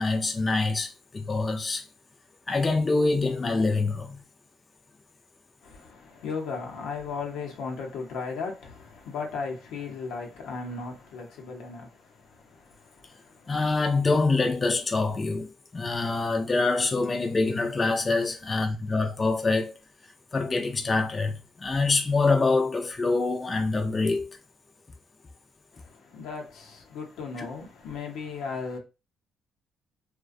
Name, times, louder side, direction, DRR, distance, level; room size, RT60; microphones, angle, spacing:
voice 1, 0.0-1.8 2.5-4.2 13.5-19.7 20.3-24.3 27.4-27.5, left 3 dB, 30° left, 0.4 m, -25 dB
voice 2, 5.6-13.6 25.7-28.8, left 4 dB, 90° left, 0.7 m, -36 dB
2.4 x 2.1 x 2.5 m
cardioid pair, 90°, 0 cm